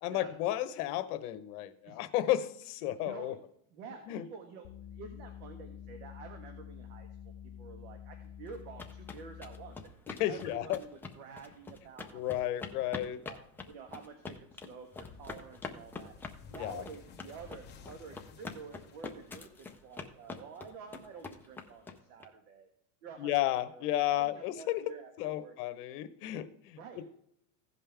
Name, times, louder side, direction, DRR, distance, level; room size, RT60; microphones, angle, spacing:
voice 1, 0.0-3.3 4.1-4.2 10.2-10.8 12.1-13.2 16.6-16.8 23.2-24.8 25.2-26.8, left 14 dB, 70° left, 11 dB, 1.1 m, -32 dB
voice 2, 3.0-3.4 3.7-9.9 10.3-12.5 12.8-16.1 16.5-22.7 23.0-23.3 23.7-25.5 26.8-27.0, right 5 dB, 70° right, 4 dB, 1.7 m, -49 dB
sound 1, 4.6-9.9, left 8 dB, 40° left, 0.7 m, -48 dB
sound 2, 8.5-22.2, left 4 dB, 5° left, 0.4 m, -45 dB
sound 3, 14.9-20.0, left 5 dB, 20° left, 1.2 m, -54 dB
16.5 x 5.5 x 3.4 m, 0.72 s
supercardioid pair, 150°, 46 cm